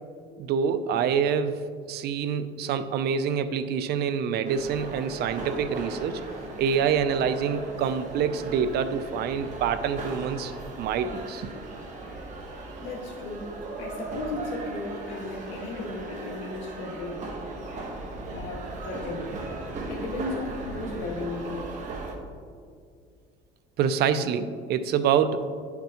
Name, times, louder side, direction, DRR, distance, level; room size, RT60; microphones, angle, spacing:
voice 1, 0.4-6.2 6.6-11.5 23.8-25.5, right 7 dB, 60° right, 10 dB, 0.5 m, -26 dB
sound 1, 4.4-22.2, right 2 dB, 40° right, 1.2 m, -38 dB
voice 2, 12.8-17.2 18.3-19.3 19.9-21.7, left 2 dB, 85° left, -1 dB, 1.7 m, -35 dB
11.0 x 5.8 x 3.0 m, 2.1 s
cardioid pair, 130°, 18 cm